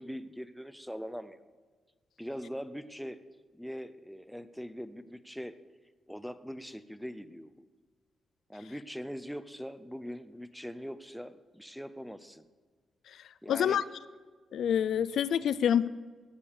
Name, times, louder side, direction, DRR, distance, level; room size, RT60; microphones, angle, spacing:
voice 1, 0.0-1.4 2.2-3.2 3.5-5.6 6.1-7.5 8.5-12.4 13.4-13.8, equal, ahead, 12 dB, 0.5 m, -41 dB
voice 2, 13.5-13.8 14.5-15.9, left 9 dB, 75° left, 16 dB, 0.4 m, -26 dB
18.0 x 7.1 x 5.0 m, 1.4 s
wide cardioid pair, 170°, 0 cm